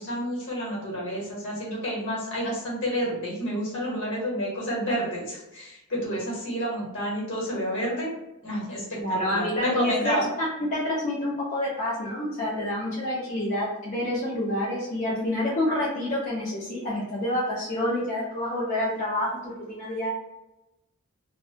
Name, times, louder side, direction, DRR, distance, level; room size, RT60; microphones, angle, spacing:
voice 1, 0.0-8.1 8.4-10.3, equal, 60° left, -4 dB, 1.1 m, -30 dB
voice 2, 9.0-10.2 10.6-20.1, left 1 dB, 35° left, -8 dB, 0.6 m, -28 dB
2.6 x 2.2 x 2.7 m, 0.94 s
head